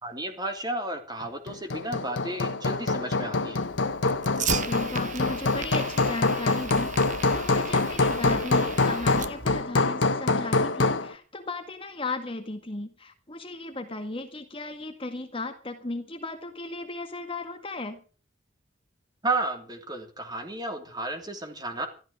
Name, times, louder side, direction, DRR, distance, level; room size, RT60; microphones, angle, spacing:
voice 1, 0.0-3.6 19.2-21.9, right 2 dB, 20° right, 5 dB, 3.0 m, -32 dB
Hammer, 1.5-11.1, left 3 dB, 85° left, 1.2 m, -25 dB
Fire, 3.6-9.6, right 7 dB, 40° right, 1.0 m, -36 dB
voice 2, 4.4-7.0 7.3-18.0, left 2 dB, 30° left, 6 dB, 1.8 m, -35 dB
13.5 x 13.0 x 6.3 m, 0.38 s
head